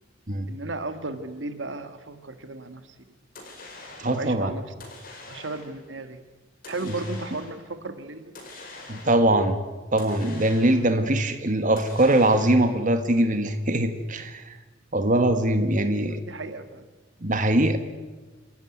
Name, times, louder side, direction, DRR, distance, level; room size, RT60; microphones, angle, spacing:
voice 1, 0.5-2.9 4.1-4.7 5.3-6.2 6.7-8.3 16.1-16.8, right 3 dB, 70° right, 9 dB, 1.7 m, -35 dB
sound 1, 3.3-4.3 4.8-5.8 6.6-7.7 8.3-9.4 10.0-11.1 11.8-12.8, left 2 dB, 50° left, 4.9 m, -44 dB
voice 2, 4.0-4.5 8.9-9.6 9.9-14.6 14.9-16.2 17.2-17.8, right 1 dB, 45° right, 8 dB, 1.5 m, -22 dB
27.5 x 14.0 x 9.6 m, 1.3 s
head